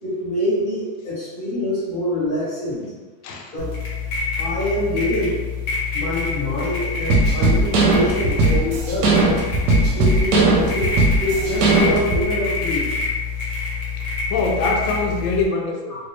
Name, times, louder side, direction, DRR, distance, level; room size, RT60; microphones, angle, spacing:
voice 1, 0.0-2.8 3.5-3.7 4.4-5.4 5.9-9.1 9.9-10.9 11.2-12.8 14.5-14.6, equal, 30° left, -9 dB, 1.3 m, -25 dB
voice 2, 3.2-3.6 14.0-16.0, left 3 dB, 90° left, 1 dB, 1.3 m, -24 dB
sound 1, 3.6-15.4, left 5 dB, 50° left, 1.1 m, -27 dB
sound 2, 7.1-12.2, right 2 dB, 70° right, 1.1 m, -18 dB
3.2 x 2.7 x 3.1 m, 1.3 s
omnidirectional pair, 2.0 m